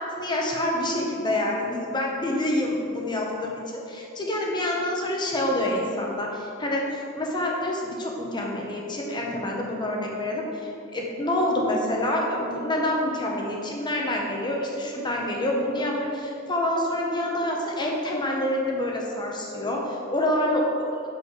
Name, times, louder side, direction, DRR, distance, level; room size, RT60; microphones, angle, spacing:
voice 1, 0.0-20.7, left 1 dB, 20° left, -1 dB, 1.0 m, -27 dB
6.3 x 5.7 x 4.8 m, 2.7 s
head